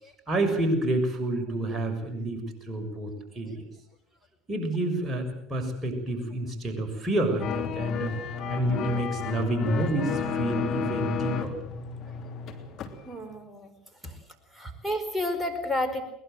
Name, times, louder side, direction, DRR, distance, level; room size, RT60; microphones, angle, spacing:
voice 1, 0.3-3.6 4.5-8.1 8.5-11.5, right 1 dB, 20° right, 3 dB, 6.6 m, -29 dB
sound 1, 7.4-13.0 13.2-13.3, left 6 dB, 45° left, 3.3 m, -32 dB
voice 2, 13.0-13.7 14.0-14.2 14.5-16.0, left 1 dB, 5° right, 5 dB, 4.9 m, -31 dB
22.5 x 21.0 x 7.8 m, 0.75 s
figure-of-eight pair, 70°, 0 cm